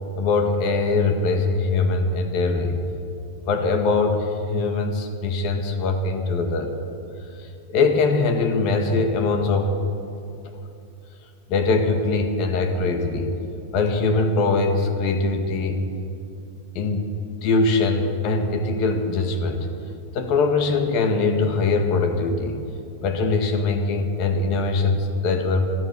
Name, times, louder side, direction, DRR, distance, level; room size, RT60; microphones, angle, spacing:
voice 1, 0.2-2.8 3.5-6.7 7.3-9.8 11.5-13.3 13.7-15.8 16.7-17.1 17.4-19.7 20.1-22.6 23.0-25.7, left 3 dB, 50° left, 6 dB, 1.7 m, -22 dB
14.5 x 13.0 x 6.9 m, 2.5 s
hypercardioid pair, 125°, 0 cm